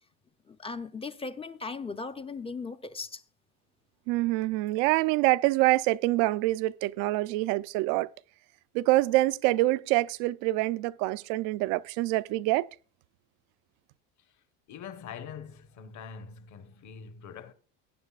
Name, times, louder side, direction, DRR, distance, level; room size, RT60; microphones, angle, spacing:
voice 1, 0.5-3.2, left 4 dB, 15° left, 0.5 m, -37 dB
voice 2, 4.1-8.1 8.7-12.7, right 18 dB, 70° right, 0.6 m, -26 dB
voice 3, 14.7-17.5, left 7 dB, 45° left, 1.2 m, -44 dB
19.0 x 9.4 x 2.4 m
supercardioid pair, 100°, 40 cm